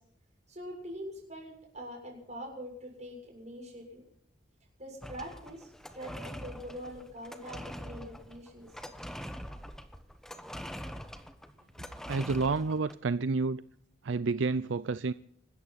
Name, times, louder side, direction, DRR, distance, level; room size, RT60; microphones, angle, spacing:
voice 1, 0.5-4.0 4.8-8.7 11.8-11.9, equal, 40° right, 7.1 m, -44 dB
sound 1, 5.0-13.0, equal, 5° left, 1.2 m, -44 dB
voice 2, 12.1-13.6 14.0-15.1, right 4 dB, 85° right, 0.5 m, -29 dB
25.5 x 13.5 x 4.2 m
head